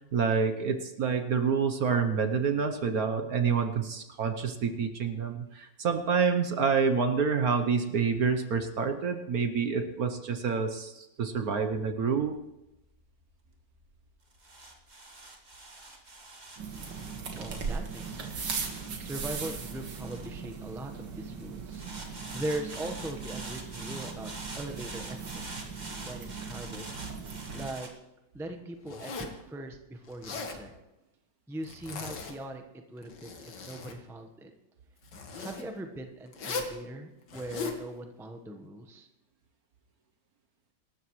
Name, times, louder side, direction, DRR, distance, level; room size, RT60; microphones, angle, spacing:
voice 1, 0.1-12.4, right 5 dB, 60° right, 7 dB, 1.2 m, -28 dB
sound 1, 11.6-21.0 21.7-27.9, right 2 dB, 25° right, 1.7 m, -46 dB
sound 2, 16.6-27.7, right 5 dB, 75° right, 2.5 m, -39 dB
voice 2, 17.3-25.4 26.0-26.9 27.5-27.9 28.3-30.7 31.5-32.6 32.9-34.5 35.4-39.1, right 1 dB, ahead, 5 dB, 0.8 m, -40 dB
Zipper (clothing), 28.9-29.4 30.1-30.6 31.6-32.4 33.0-34.0 35.1-35.6 36.3-36.8 37.3-37.8, left 4 dB, 65° left, 2.1 m, -38 dB
26.0 x 13.0 x 3.2 m, 0.93 s
omnidirectional pair, 2.1 m